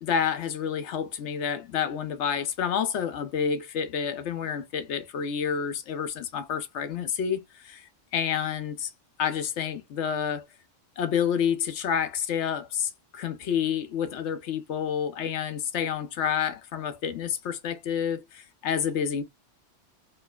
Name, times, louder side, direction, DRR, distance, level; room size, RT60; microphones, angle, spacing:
voice 1, 0.0-8.9 9.2-10.4 11.0-19.2, left 8 dB, 70° left, 1.0 m, -29 dB
4.6 x 2.4 x 2.3 m
omnidirectional pair, 1.3 m